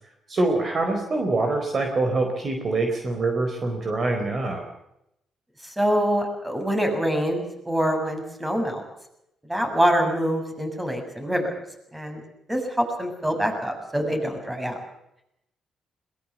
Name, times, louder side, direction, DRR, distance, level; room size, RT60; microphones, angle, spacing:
voice 1, 0.3-4.6, right 2 dB, 40° right, 4 dB, 4.2 m, -24 dB
voice 2, 5.6-8.8 9.5-11.5 11.9-12.2 12.5-14.8, equal, 10° right, 5 dB, 7.0 m, -25 dB
21.5 x 20.0 x 7.4 m, 0.80 s
cardioid pair, 90°, 0 cm